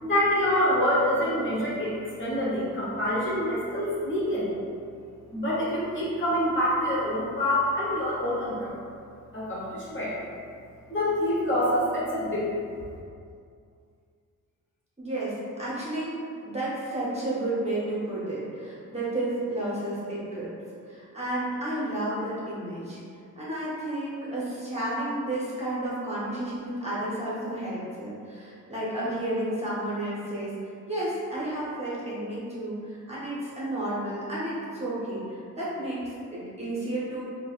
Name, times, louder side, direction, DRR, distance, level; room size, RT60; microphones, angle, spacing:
voice 1, 0.0-4.5 5.3-8.7 9.3-10.1 10.9-12.5, left 1 dB, 35° left, -8 dB, 0.9 m, -26 dB
voice 2, 15.0-20.5 20.9-23.0 23.4-30.5 30.9-37.2, right 1 dB, 20° right, -9 dB, 0.8 m, -32 dB
4.5 x 2.1 x 2.4 m, 2.4 s
wide cardioid pair, 115°, 33 cm